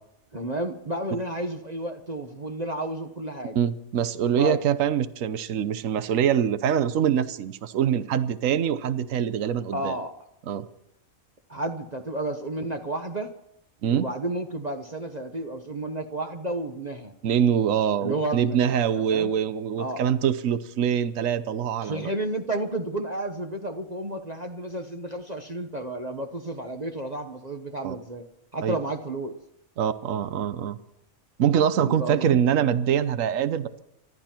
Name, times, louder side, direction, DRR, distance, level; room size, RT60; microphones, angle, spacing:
voice 1, 0.3-3.6 4.4-4.6 9.7-10.1 11.5-13.3 13.9-17.1 18.0-19.3 19.8-20.0 21.8-28.2 28.5-29.3 31.8-32.4, right 1 dB, 30° right, 4 dB, 1.1 m, -31 dB
voice 2, 3.5-9.9 10.5-10.6 13.8-14.1 17.2-22.0 27.8-27.9 28.6-28.8 29.8-30.8 31.4-33.8, right 9 dB, 65° right, 13 dB, 1.2 m, -24 dB
25.0 x 12.0 x 4.5 m, 0.78 s
omnidirectional pair, 1.5 m